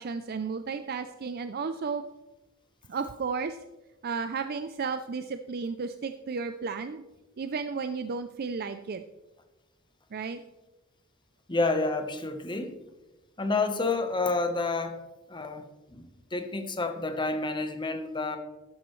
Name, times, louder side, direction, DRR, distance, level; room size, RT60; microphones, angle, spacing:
voice 1, 0.0-2.0 2.9-3.6 4.0-7.0 7.4-9.0 10.1-10.4, right 5 dB, 45° right, 9 dB, 0.4 m, -33 dB
voice 2, 11.5-12.7 13.4-15.0 15.3-18.4, left 3 dB, 20° left, 6 dB, 1.0 m, -29 dB
13.0 x 10.0 x 3.2 m, 1.1 s
head